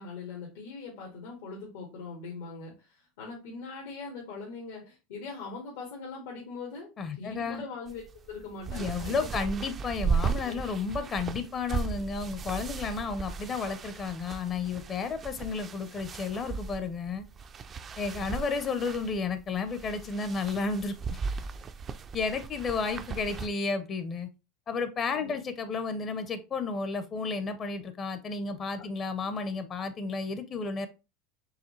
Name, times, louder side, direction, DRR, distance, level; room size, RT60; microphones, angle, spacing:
voice 1, 0.0-9.3 10.4-10.5 18.3-18.4 25.1-25.4, left 4 dB, 85° left, 1.6 m, -41 dB
voice 2, 7.0-7.6 8.7-17.2 18.0-21.0 22.1-24.3 24.7-30.9, left 4 dB, 30° left, 0.6 m, -32 dB
sound 1, 7.9-23.5, right 5 dB, 25° right, 0.4 m, -36 dB
4.8 x 3.3 x 3.1 m
supercardioid pair, 130°, 0 cm